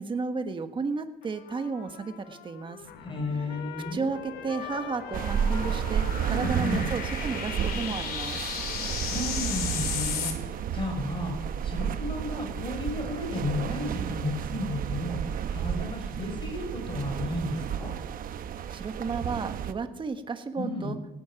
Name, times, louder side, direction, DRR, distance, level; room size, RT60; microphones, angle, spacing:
voice 1, 0.0-2.8 3.3-3.6 3.9-8.4 18.7-21.0, right 4 dB, 30° right, 8 dB, 1.4 m, -33 dB
Trumpet, 1.2-8.9, left 11 dB, 85° left, 1.3 m, -45 dB
sound 1, 2.8-10.3, left 7 dB, 65° left, 3.0 m, -36 dB
voice 2, 3.0-4.1 6.3-6.9 9.0-15.2 15.5-17.9 20.6-21.0, left 1 dB, 30° left, 3 dB, 5.3 m, -33 dB
sound 2, 5.1-19.7, right 8 dB, 55° right, 0.9 m, -32 dB
18.0 x 12.0 x 5.9 m, 0.94 s
cardioid pair, 110°, 17 cm